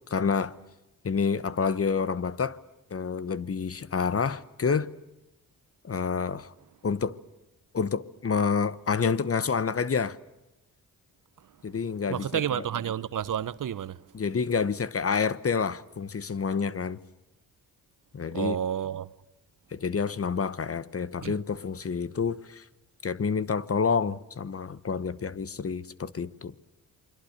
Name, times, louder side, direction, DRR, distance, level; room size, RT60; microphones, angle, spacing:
voice 1, 0.1-0.6 1.0-2.6 2.9-4.9 5.8-6.5 6.8-7.2 7.7-10.2 11.6-12.6 14.1-17.0 18.1-18.6 19.7-22.6 23.0-26.5, left 5 dB, 40° left, 1.1 m, -28 dB
voice 2, 12.1-14.0 18.3-19.1 21.2-21.3, right 9 dB, 55° right, 0.9 m, -30 dB
29.0 x 22.5 x 6.6 m
cardioid pair, 65°, 37 cm